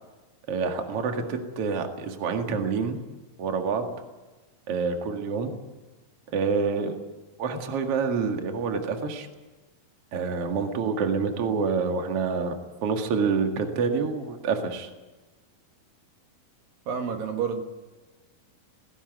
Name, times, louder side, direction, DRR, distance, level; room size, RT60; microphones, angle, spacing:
voice 1, 0.5-3.0 3.4-3.8 4.7-5.5 6.3-7.0 7.4-9.3 10.1-12.5 12.8-14.9, right 5 dB, 45° right, 4 dB, 2.6 m, -27 dB
voice 2, 16.9-17.6, right 6 dB, 75° right, 5 dB, 3.4 m, -29 dB
19.0 x 16.5 x 9.4 m, 1.2 s
omnidirectional pair, 4.1 m